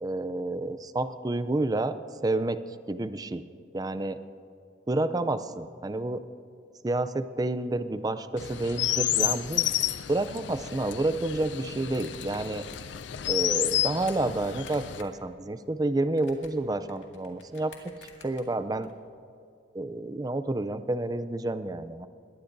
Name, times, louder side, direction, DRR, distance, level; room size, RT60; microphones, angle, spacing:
voice 1, 0.0-1.9 2.2-2.6 2.9-3.5 3.7-4.2 4.9-6.2 6.8-9.7 10.1-12.6 13.3-17.7 18.2-18.9 19.7-22.1, right 2 dB, 20° right, 12 dB, 0.4 m, -29 dB
Chirp tweet, 8.4-15.0, left 13 dB, 70° left, 0.4 m, -30 dB
sound 1, 11.9-13.1 13.4-14.2 14.5-15.2 15.5-18.9, left 5 dB, 90° left, 2.1 m, -51 dB
22.0 x 18.5 x 2.7 m, 2.5 s
head